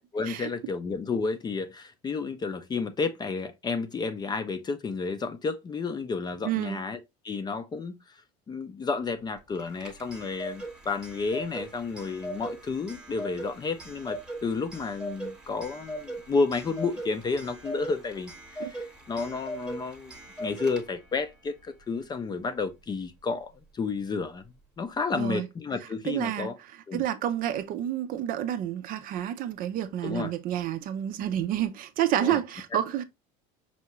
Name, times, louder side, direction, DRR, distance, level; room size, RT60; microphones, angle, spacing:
voice 1, 0.1-7.0 7.2-8.0 8.5-18.3 18.6-24.4 24.8-26.6 26.9-27.0 30.0-30.3 32.2-32.4, left 4 dB, 20° left, 0.5 m, -31 dB
voice 2, 6.4-6.8 18.6-18.7 25.1-25.5 26.0-26.5 26.9-33.0, right 11 dB, 50° right, 0.5 m, -29 dB
Clock, 9.6-21.2, right 1 dB, 5° right, 1.0 m, -40 dB
5.5 x 2.4 x 2.9 m
cardioid pair, 130°, 19 cm